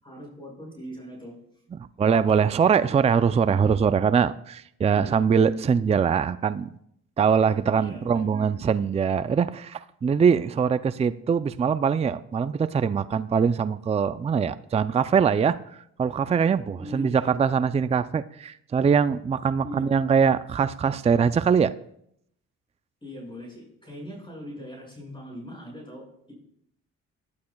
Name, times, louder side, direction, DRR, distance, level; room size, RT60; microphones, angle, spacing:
voice 1, 0.0-1.3 4.9-5.2 7.7-8.5 16.8-17.4 19.6-19.9 23.0-26.3, equal, 15° left, -2 dB, 6.0 m, -40 dB
voice 2, 2.0-6.7 7.2-21.7, right 6 dB, 20° right, 13 dB, 0.4 m, -22 dB
19.0 x 11.5 x 2.3 m, 0.71 s
cardioid pair, 90°, 30 cm